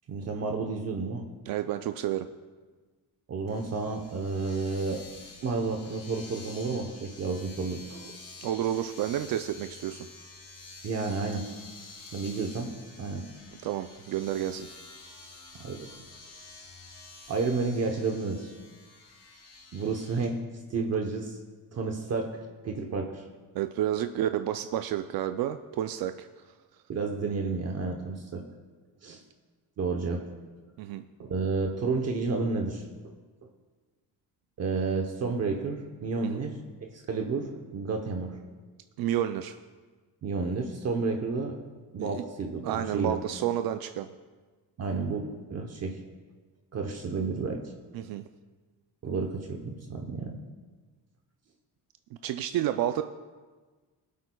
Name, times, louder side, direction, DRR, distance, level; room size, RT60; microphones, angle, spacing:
voice 1, 0.1-1.2 3.3-5.0 5.4-8.1 10.8-11.5 12.1-12.7 13.0-13.2 15.6-15.9 17.3-18.5 19.7-20.4 20.7-21.4 21.7-23.2 26.9-28.5 29.0-29.2 29.8-30.2 31.2-33.1 34.6-36.5 36.8-38.4 40.2-41.6 41.9-43.2 44.8-46.0 46.7-47.6 49.0-50.4, right 4 dB, 45° right, 2 dB, 0.9 m, -31 dB
voice 2, 1.5-2.3 8.4-10.1 13.6-14.7 20.8-20.9 23.5-26.3 30.8-31.0 36.2-36.4 39.0-39.6 42.0-42.2 42.6-44.1 47.9-48.2 52.2-53.0, right 11 dB, 80° right, 8 dB, 0.5 m, -30 dB
Domestic sounds home sounds, 3.5-20.3, left 3 dB, 65° left, 3.5 m, -49 dB
21.5 x 8.4 x 2.3 m, 1.4 s
cardioid pair, 160°, 35 cm